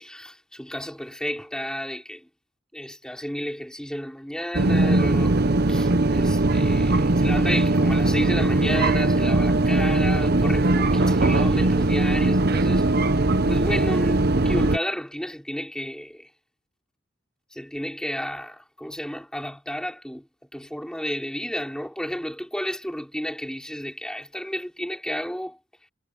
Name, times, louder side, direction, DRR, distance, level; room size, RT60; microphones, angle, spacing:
voice 1, 0.0-2.3 2.7-5.4 5.7-12.9 13.5-16.3 17.5-20.3 20.5-25.6, equal, 5° left, 4.0 m, -32 dB
sound 1, 4.5-14.8, right 2 dB, 55° right, 0.9 m, -20 dB
head